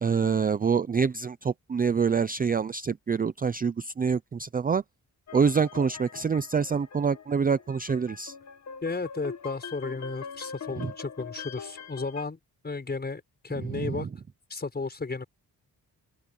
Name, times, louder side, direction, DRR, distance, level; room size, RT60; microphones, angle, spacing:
voice 1, 0.0-4.8 5.3-8.3 10.8-10.9 13.6-14.1, right 6 dB, 25° right, 0.4 m, -26 dB
sound 1, 5.3-12.2, left 6 dB, 45° left, 1.6 m, -43 dB
voice 2, 8.8-12.4 12.6-14.1 14.5-15.3, left 3 dB, 25° left, 5.0 m, -33 dB
open air
wide cardioid pair, 160°, 37 cm